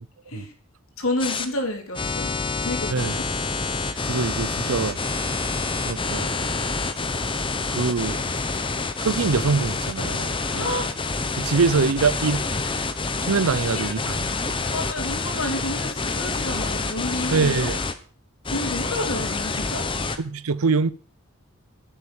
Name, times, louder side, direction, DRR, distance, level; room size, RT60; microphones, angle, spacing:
voice 1, 1.0-3.2 10.5-10.9 12.6-12.9 13.5-14.0 14.7-17.7 18.5-19.9, left 1 dB, 75° left, 3.6 m, -30 dB
sound 1, 1.2-1.4 1.9-17.9 18.4-20.2, left 3 dB, 25° left, 1.0 m, -27 dB
voice 2, 4.0-5.0 5.2-5.5 5.8-6.3 7.7-8.2 9.0-10.7 11.4-12.5 13.2-14.3 17.3-17.8 20.2-20.9, right 4 dB, 85° right, 0.7 m, -24 dB
11.0 x 7.6 x 7.0 m
head